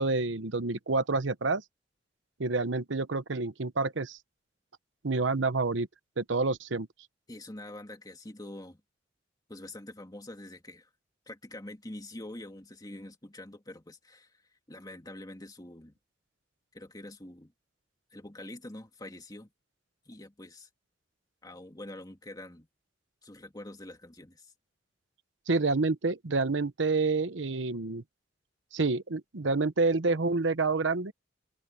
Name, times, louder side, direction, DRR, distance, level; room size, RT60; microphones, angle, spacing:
voice 1, 0.0-1.6 2.4-4.2 5.0-5.9 6.2-6.9 25.5-28.0 28.7-31.1, right 3 dB, 90° right, 1.0 m, -28 dB
voice 2, 7.3-8.8 9.5-10.9 11.3-14.4 14.7-16.0 16.7-17.5 18.1-19.5 20.1-20.7 21.4-22.7 23.2-24.5, left 1 dB, 20° left, 2.5 m, -45 dB
head